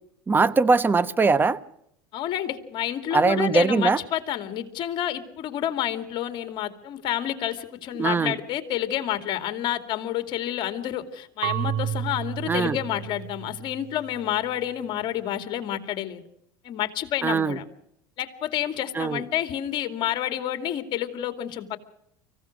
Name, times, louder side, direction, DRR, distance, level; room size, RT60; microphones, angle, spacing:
voice 1, 0.3-1.6 3.1-4.0 8.0-8.3 12.5-12.8 17.2-17.6 18.9-19.2, right 4 dB, 20° right, 14 dB, 1.1 m, -21 dB
voice 2, 2.1-16.2 16.6-17.6 18.2-21.8, left 11 dB, 50° left, 9 dB, 2.5 m, -29 dB
Marimba xylophone / Wood, 11.4-14.3, right 10 dB, 70° right, 0.9 m, -31 dB
25.5 x 16.0 x 6.4 m, 0.76 s
hypercardioid pair, 95°, 11 cm